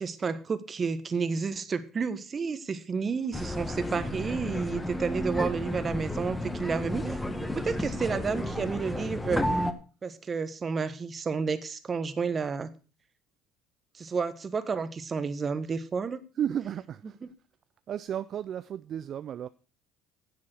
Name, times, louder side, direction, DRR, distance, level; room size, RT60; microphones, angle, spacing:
voice 1, 0.0-9.4 10.0-12.7 13.9-16.2, right 5 dB, 35° right, 1.3 m, -31 dB
sound 1, 3.3-9.7, left 1 dB, 10° left, 1.4 m, -32 dB
voice 2, 16.4-17.2 17.9-19.5, right 9 dB, 50° right, 0.5 m, -33 dB
10.5 x 7.5 x 6.3 m
supercardioid pair, 85°, 0 cm